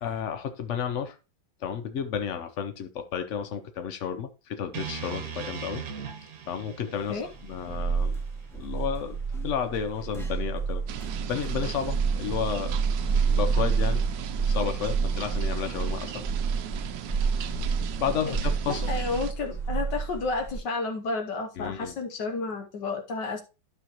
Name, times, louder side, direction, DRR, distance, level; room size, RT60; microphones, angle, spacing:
voice 1, 0.0-1.2 1.6-5.8 6.5-8.2 8.5-10.8 11.3-12.7 13.3-14.0 14.5-16.2 18.0-18.9 21.6-21.9, left 7 dB, 85° left, 8 dB, 0.6 m, -32 dB
sound 1, 4.7-8.9, right 7 dB, 50° right, 1.4 m, -40 dB
sound 2, 7.1-20.6, right 5 dB, ahead, 0.8 m, -29 dB
sound 3, 10.9-19.3, right 10 dB, 70° right, 1.3 m, -38 dB
voice 2, 18.7-23.4, left 3 dB, 65° left, 5 dB, 1.4 m, -31 dB
11.5 x 5.7 x 3.0 m, 0.30 s
omnidirectional pair, 2.2 m